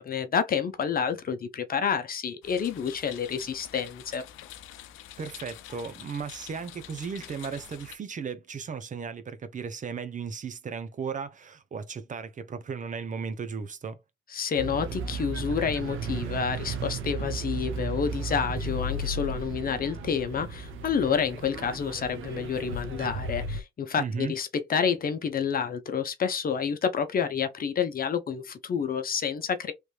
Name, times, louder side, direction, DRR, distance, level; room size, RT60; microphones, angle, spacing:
voice 1, 0.0-4.2 14.3-29.7, left 7 dB, 45° left, 0.8 m, -29 dB
sound 1, 2.4-8.0, left 12 dB, 90° left, 0.5 m, -46 dB
voice 2, 5.2-14.0 24.0-24.3, right 6 dB, 40° right, 0.7 m, -36 dB
sound 2, 14.6-23.6, right 3 dB, 80° right, 0.8 m, -34 dB
3.3 x 3.1 x 2.4 m
cardioid pair, 90°, 20 cm